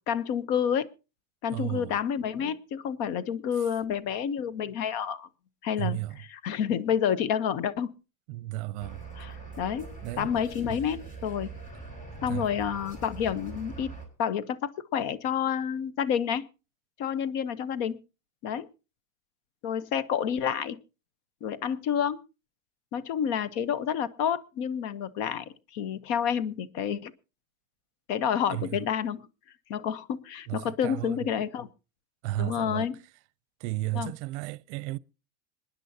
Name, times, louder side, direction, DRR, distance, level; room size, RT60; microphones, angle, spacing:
voice 1, 0.1-0.9 1.4-5.3 5.6-7.9 9.2-9.9 10.2-11.5 12.2-13.9 14.2-16.4 17.0-18.0 18.4-18.7 19.6-20.8 21.4-22.2 22.9-25.4 25.7-27.1 28.1-29.3 29.7-31.7 32.4-32.9 33.9-34.1, left 8 dB, 55° left, 1.0 m, -29 dB
voice 2, 1.5-2.0 5.8-6.2 8.3-9.0 10.0-10.3 10.7-10.8 12.2-12.5 28.5-28.8 30.5-31.3 32.2-32.9 33.6-35.0, right 17 dB, 60° right, 0.6 m, -33 dB
sound 1, 8.8-14.1, right 3 dB, 20° left, 5.0 m, -42 dB
26.0 x 10.0 x 2.7 m
supercardioid pair, 135°, 40 cm